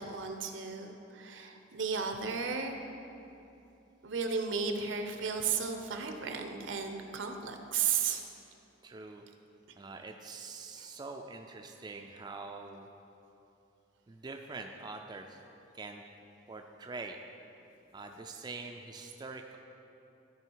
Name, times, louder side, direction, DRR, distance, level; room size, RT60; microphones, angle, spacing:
voice 1, 0.0-2.8 4.0-8.2, right 6 dB, 75° right, 5 dB, 0.7 m, -34 dB
voice 2, 8.8-9.3 9.8-12.9 14.1-15.4 15.7-16.0 16.5-17.2 17.9-19.6, right 3 dB, 20° right, 3 dB, 0.3 m, -44 dB
13.0 x 4.8 x 4.6 m, 2.8 s
head